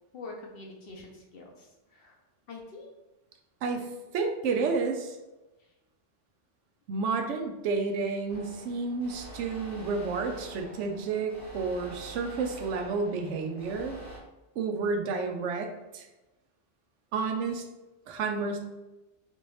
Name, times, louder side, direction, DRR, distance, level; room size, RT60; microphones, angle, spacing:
voice 1, 0.1-2.2 2.5-2.9, left 3 dB, 60° left, 0 dB, 0.8 m, -45 dB
voice 2, 3.6-5.2 6.9-14.0 14.6-16.1 17.1-17.6 18.1-18.6, right 4 dB, 80° right, 4 dB, 0.9 m, -31 dB
sound 1, 8.3-14.2, right 1 dB, 15° right, 0.8 m, -46 dB
3.4 x 2.9 x 3.1 m, 1.0 s
omnidirectional pair, 1.2 m